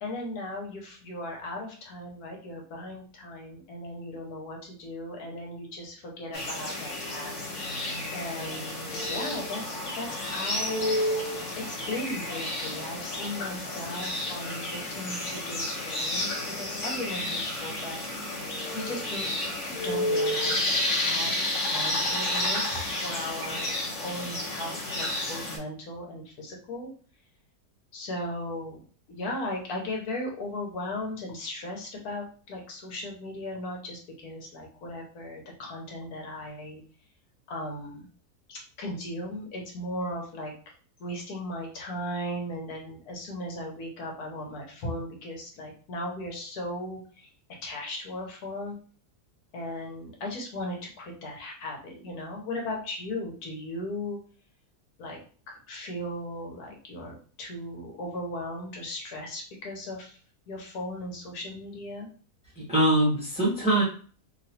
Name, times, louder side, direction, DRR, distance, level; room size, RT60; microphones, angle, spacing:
voice 1, 0.0-7.5 8.1-11.0 11.5-16.3 16.6-18.0 18.7-19.3 19.8-23.7 24.0-26.9 27.9-28.8 29.1-36.8 37.5-38.1 38.5-40.5 41.0-47.3 47.6-48.8 49.5-54.2 55.0-55.2 55.5-60.2 60.5-62.1, left 1 dB, 75° left, 0 dB, 1.3 m, -37 dB
sound 1, 6.3-25.6, left 1 dB, 55° left, 1.2 m, -31 dB
voice 2, 62.6-63.8, right 1 dB, 5° right, -6 dB, 0.9 m, -23 dB
3.1 x 2.8 x 2.7 m, 0.42 s
omnidirectional pair, 1.7 m